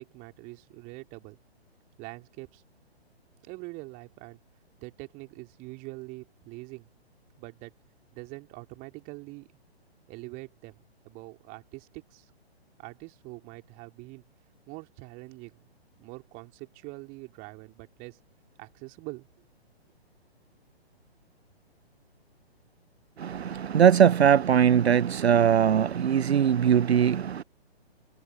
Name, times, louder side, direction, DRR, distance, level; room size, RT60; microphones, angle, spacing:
voice 1, 0.0-1.4 2.0-2.6 3.4-4.4 4.8-6.9 7.4-7.7 8.1-9.5 10.1-12.3 12.8-14.2 14.7-15.7 16.0-18.2 18.6-19.3, right 26 dB, 25° right, 3.2 m, -44 dB
voice 2, 23.2-27.4, right 8 dB, 75° right, 0.5 m, -21 dB
figure-of-eight pair, 125°, 32 cm